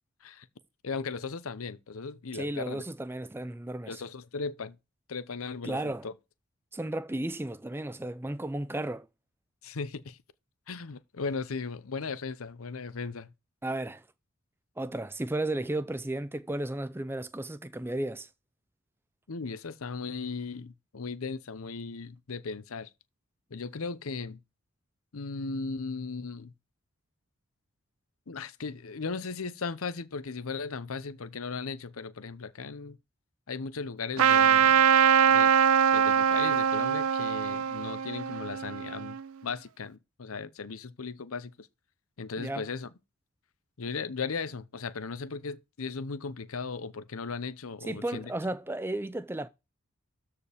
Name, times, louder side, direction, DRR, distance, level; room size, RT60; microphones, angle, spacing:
voice 1, 0.8-2.8 3.9-4.8 5.1-6.1 9.6-10.2 10.7-13.3 19.3-22.9 23.5-24.4 25.1-26.5 28.3-33.0 33.5-34.8 35.3-35.5 35.9-41.7 42.2-42.9 43.8-48.3, left 4 dB, 80° left, 0.7 m, -37 dB
voice 2, 2.3-4.0 5.6-6.1 6.7-9.1 13.6-14.0 14.8-18.3 42.4-42.7 47.9-49.5, right 1 dB, 10° right, 0.4 m, -34 dB
Trumpet, 34.2-39.2, right 8 dB, 75° right, 0.4 m, -23 dB
13.0 x 4.8 x 3.5 m
head